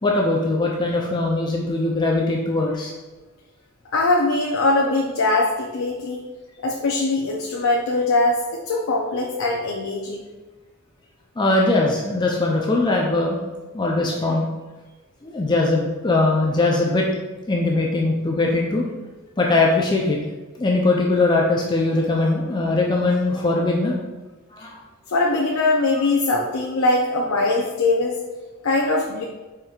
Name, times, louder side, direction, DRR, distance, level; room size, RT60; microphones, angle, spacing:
voice 1, 0.0-2.9 11.4-13.4 13.7-14.5 15.2-17.1 17.5-18.8 19.4-20.2 20.6-24.0 24.5-24.8 25.9-26.0, left 2 dB, 20° left, -1 dB, 0.4 m, -21 dB
voice 2, 3.9-6.2 6.6-10.3 24.6-24.7 25.1-28.2 28.6-29.2, left 2 dB, 80° left, 0 dB, 0.5 m, -21 dB
4.9 x 4.3 x 2.3 m, 1.2 s
head